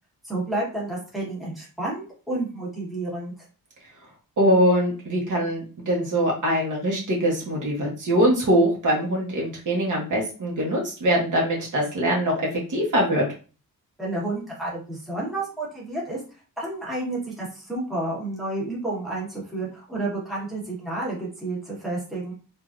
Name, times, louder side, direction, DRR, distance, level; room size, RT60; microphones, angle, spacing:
voice 1, 0.2-3.3 14.0-16.2 16.6-22.3, right 2 dB, ahead, -6 dB, 1.1 m, -30 dB
voice 2, 4.4-13.2, equal, 55° right, -2 dB, 1.1 m, -23 dB
3.4 x 2.6 x 2.4 m, 0.35 s
wide cardioid pair, 175°, 36 cm